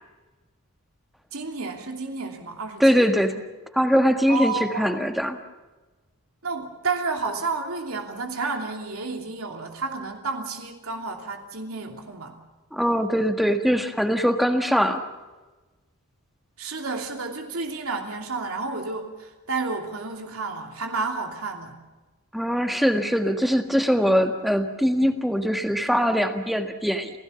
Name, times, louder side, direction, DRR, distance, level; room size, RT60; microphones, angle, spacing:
voice 1, 1.3-3.1 4.3-5.0 6.4-12.3 16.6-21.8, right 4 dB, 80° right, 2 dB, 2.9 m, -31 dB
voice 2, 2.8-3.4 3.7-5.4 12.7-15.0 22.3-27.1, equal, ahead, 6 dB, 1.6 m, -22 dB
29.0 x 17.0 x 7.0 m, 1.2 s
head